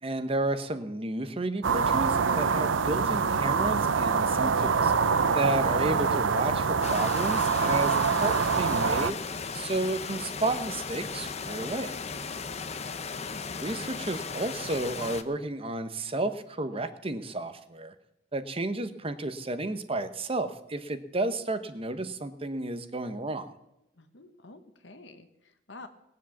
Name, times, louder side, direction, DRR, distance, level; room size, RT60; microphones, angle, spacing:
voice 1, 0.0-4.9 5.3-7.9 8.2-9.2 9.5-11.9 13.6-17.9 18.3-23.5, right 2 dB, 30° right, 10 dB, 0.9 m, -32 dB
sound 1, 1.6-9.1, right 5 dB, 85° right, 0.7 m, -25 dB
sound 2, 6.8-15.2, left 5 dB, 35° left, 0.8 m, -36 dB
voice 2, 12.2-12.9 23.9-25.9, left 2 dB, 70° left, 8 dB, 1.4 m, -50 dB
19.5 x 7.6 x 7.1 m, 0.87 s
head